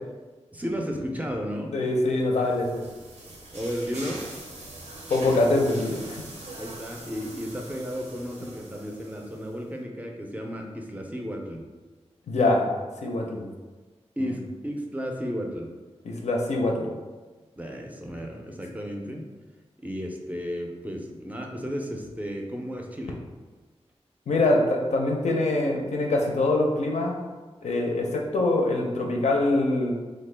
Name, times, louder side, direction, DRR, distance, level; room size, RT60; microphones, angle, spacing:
voice 1, 0.5-1.9 3.5-4.2 6.6-11.7 14.2-15.7 17.6-19.2 19.8-23.2, equal, 15° right, 1 dB, 0.4 m, -33 dB
voice 2, 1.7-2.8 5.1-6.2 12.3-12.7 13.0-13.5 14.2-14.3 16.0-16.9 24.3-27.2 27.6-29.9, left 2 dB, 85° left, 0 dB, 0.5 m, -24 dB
sound 1, 2.1-9.6, right 2 dB, 90° right, 0.6 m, -43 dB
3.3 x 2.1 x 3.2 m, 1.3 s
wide cardioid pair, 115°, 11 cm